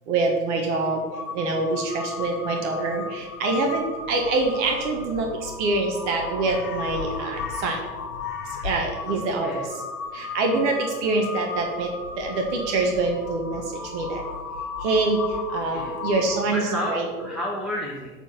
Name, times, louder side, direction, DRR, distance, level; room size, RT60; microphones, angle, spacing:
voice 1, 0.1-1.0 1.3-7.8 8.6-9.6 10.1-11.9 12.2-13.6 13.9-14.2 14.8-15.2 15.5-17.1, right 3 dB, 50° right, 2 dB, 1.4 m, -25 dB
Crow, 1.1-16.6, left 4 dB, 75° left, 1.9 m, -35 dB
voice 2, 9.1-9.7 15.7-16.0 16.5-18.1, left 1 dB, ahead, -4 dB, 1.1 m, -32 dB
7.8 x 4.5 x 6.9 m, 1.4 s
figure-of-eight pair, 95°, 45 cm